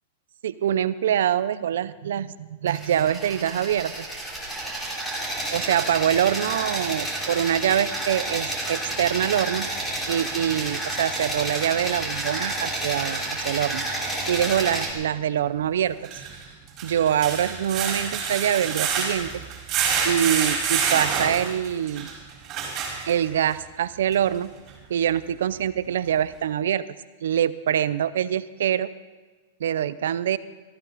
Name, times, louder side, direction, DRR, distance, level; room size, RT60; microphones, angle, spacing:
voice 1, 0.4-4.0 5.5-9.7 10.1-13.8 14.3-16.0 16.8-19.3 20.0-22.1 23.1-24.5 24.9-26.8 27.2-28.9 29.6-30.4, right 10 dB, 80° right, 16 dB, 0.6 m, -24 dB
sound 1, 2.7-14.9, right 1 dB, 5° left, 3.3 m, -30 dB
sound 2, 13.4-13.5 15.9-23.5 24.1-24.2 24.7-24.8, right 6 dB, 35° right, 4.5 m, -27 dB
18.0 x 14.5 x 4.1 m, 1.3 s
hypercardioid pair, 140°, 0 cm